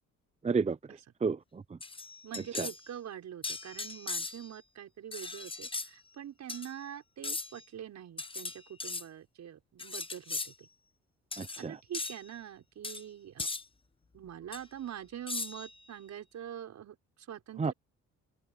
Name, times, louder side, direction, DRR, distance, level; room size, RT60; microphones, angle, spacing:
voice 1, 0.4-0.8 1.2-1.6 2.6-2.7 11.4-11.8 17.6-17.7, right 5 dB, 20° right, 0.7 m, -30 dB
sound 1, 1.8-2.8 3.4-4.6 5.1-5.9 6.5-6.7 7.2-7.6 8.2-9.0 9.8-10.5 11.3-11.6 11.9-12.2 12.8-13.0 13.4-13.6 14.5-14.6 15.3-15.7, left 3 dB, 15° left, 1.0 m, -38 dB
voice 2, 2.2-10.7 11.6-13.5 14.1-17.7, right 10 dB, 65° right, 6.3 m, -44 dB
open air
cardioid pair, 90°, 30 cm